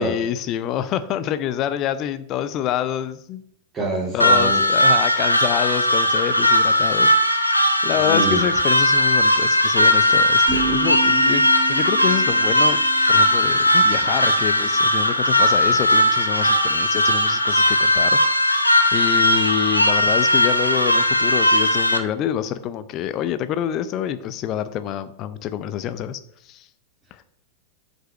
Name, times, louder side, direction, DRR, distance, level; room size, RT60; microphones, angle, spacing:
voice 1, 0.0-3.4 4.1-7.3 7.8-11.4 11.7-12.8 13.1-26.7 27.1-27.2, left 10 dB, 35° left, 13 dB, 0.5 m, -27 dB
voice 2, 3.7-4.6 8.0-8.4, right 1 dB, 20° right, -7 dB, 2.7 m, -25 dB
sound 1, 4.2-22.0, left 1 dB, 85° left, 0.9 m, -18 dB
sound 2, 10.5-14.4, right 6 dB, 35° right, 3.0 m, -31 dB
7.7 x 5.4 x 6.3 m, 0.68 s
figure-of-eight pair, 90°, 0 cm